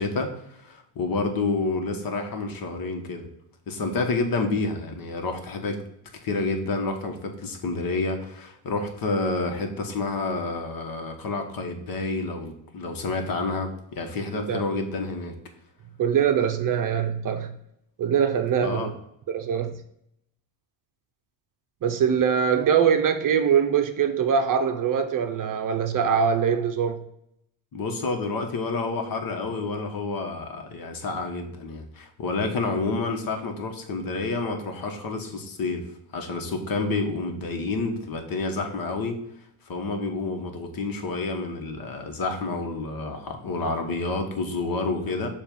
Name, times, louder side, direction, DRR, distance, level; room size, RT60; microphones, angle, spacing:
voice 1, 0.0-3.3 3.7-5.8 6.2-15.3 18.6-18.9 27.7-35.8 36.1-39.2 39.7-45.3, left 3 dB, 45° left, 4 dB, 1.2 m, -29 dB
voice 2, 14.3-14.6 16.0-17.5 18.0-18.9 19.3-19.7 21.8-27.0, right 7 dB, 45° right, 7 dB, 0.7 m, -23 dB
7.0 x 2.6 x 5.2 m, 0.76 s
supercardioid pair, 85°, 47 cm